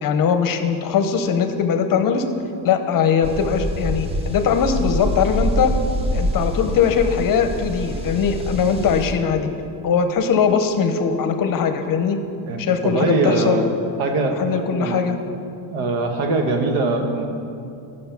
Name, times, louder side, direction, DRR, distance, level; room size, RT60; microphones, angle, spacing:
voice 1, 0.0-2.2 2.6-5.7 6.1-9.5 9.8-12.2 12.6-13.6 14.4-15.2, left 6 dB, 45° left, 7 dB, 0.7 m, -20 dB
sound 1, 3.2-9.1, equal, 15° right, 0.4 m, -25 dB
voice 2, 12.5-13.7 14.0-15.0 15.7-17.3, right 3 dB, 85° right, 4 dB, 1.3 m, -22 dB
11.5 x 6.4 x 5.8 m, 2.6 s
cardioid pair, 170°, 48 cm